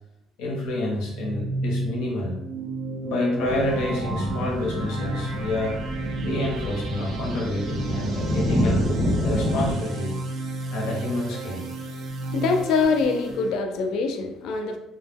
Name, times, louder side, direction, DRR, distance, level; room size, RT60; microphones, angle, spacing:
voice 1, 0.4-2.4 3.0-5.8 6.2-8.8 9.2-10.2 10.7-11.7, left 1 dB, 90° left, -2 dB, 0.7 m, -28 dB
sound 1, 1.0-13.5, right 2 dB, 45° right, 0.4 m, -33 dB
sound 2, 3.4-9.7, equal, 20° left, 0.6 m, -27 dB
voice 2, 12.3-14.8, left 4 dB, 60° left, 5 dB, 0.3 m, -24 dB
2.1 x 2.1 x 3.3 m, 0.87 s
cardioid pair, 175°, 0 cm